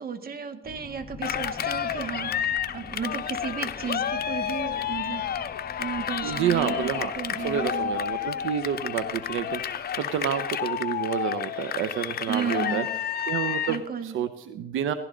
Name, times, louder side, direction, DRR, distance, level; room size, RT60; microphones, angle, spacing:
voice 1, 0.0-5.2 5.8-7.9 12.3-12.9 13.7-14.2, right 6 dB, 50° right, 8 dB, 1.8 m, -33 dB
sound 1, 0.6-13.5, left 3 dB, 30° left, 1.8 m, -48 dB
Cheering, 1.2-13.9, left 9 dB, 50° left, 0.8 m, -30 dB
voice 2, 6.2-7.1 7.4-12.8 13.3-14.9, right 9 dB, 85° right, 11 dB, 0.8 m, -29 dB
17.5 x 15.5 x 3.9 m, 0.86 s
cardioid pair, 90°, 20 cm